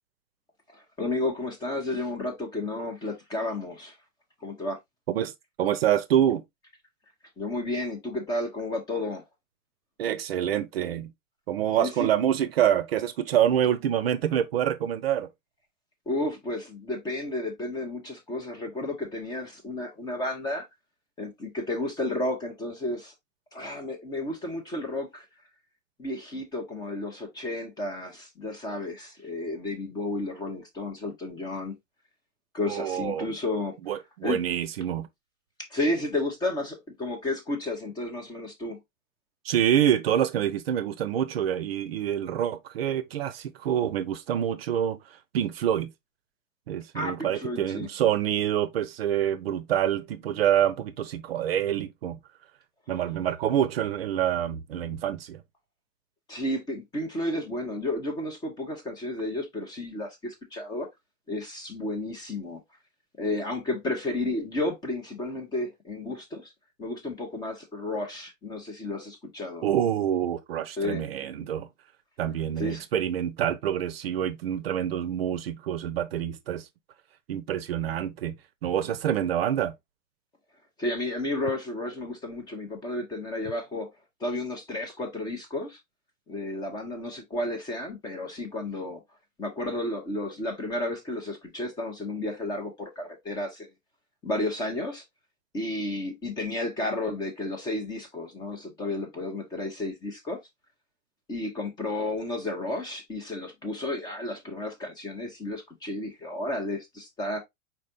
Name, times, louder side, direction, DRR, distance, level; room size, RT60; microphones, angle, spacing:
voice 1, 0.7-4.0 4.4-4.8 7.4-9.2 11.8-12.1 16.1-20.7 21.2-23.1 23.5-25.2 26.0-31.8 32.5-34.0 34.2-34.4 35.7-38.8 46.9-47.9 56.3-60.9 61.3-62.6 63.2-66.5 66.8-69.6 70.8-71.0 72.6-72.8 80.8-83.9 84.2-85.8 86.3-89.0 89.4-93.7 94.2-95.0 95.5-100.4 101.3-107.4, left 2 dB, 10° left, 0.5 m, -32 dB
voice 2, 5.6-6.4 10.0-11.1 11.5-15.3 32.7-33.3 33.8-35.1 39.4-45.0 45.3-45.9 46.7-52.2 52.9-55.4 69.6-71.7 72.2-76.7 77.3-78.4 78.6-79.7, right 10 dB, 50° right, 0.6 m, -26 dB
4.5 x 4.2 x 2.4 m
figure-of-eight pair, 105°, 40 cm